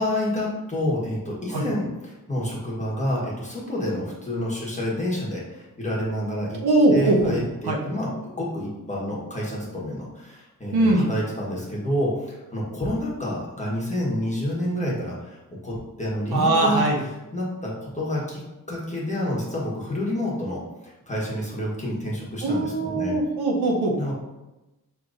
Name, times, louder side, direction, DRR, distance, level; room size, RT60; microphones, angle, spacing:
voice 1, 0.0-6.6 6.9-15.3 15.6-16.8 17.3-18.4 18.7-23.2 24.0-24.1, left 1 dB, 20° left, -5 dB, 1.3 m, -28 dB
voice 2, 6.6-7.2 7.7-7.8 10.7-11.1 16.3-17.0 22.4-23.9, right 2 dB, 85° right, -1 dB, 0.9 m, -21 dB
6.4 x 3.0 x 2.5 m, 1.0 s
wide cardioid pair, 115°, 37 cm